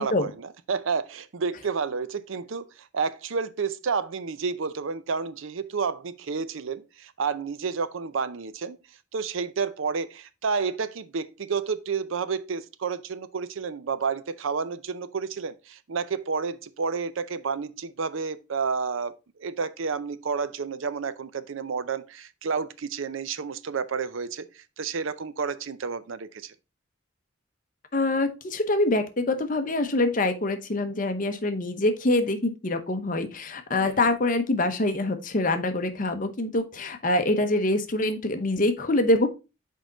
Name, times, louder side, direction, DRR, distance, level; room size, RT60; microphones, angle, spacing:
voice 1, 0.0-8.8 9.1-19.1 19.4-26.5 33.7-34.1, right 5 dB, 70° right, 0.5 m, -30 dB
voice 2, 27.9-39.3, left 2 dB, 40° left, 0.8 m, -25 dB
6.3 x 4.7 x 3.8 m
head